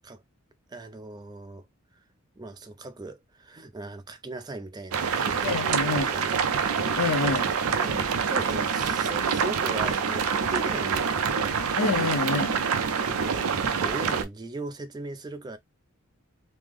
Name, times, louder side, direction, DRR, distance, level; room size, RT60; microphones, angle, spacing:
voice 1, 0.7-1.7 1.9-2.0 2.4-6.6 7.8-11.6 12.9-15.6, right 2 dB, 20° right, 0.3 m, -39 dB
sound 1, 4.9-14.2, right 6 dB, 85° right, 0.5 m, -26 dB
voice 2, 5.4-6.1 6.9-7.5 11.8-12.6, left 4 dB, 85° left, 0.5 m, -27 dB
3.1 x 2.0 x 3.4 m
head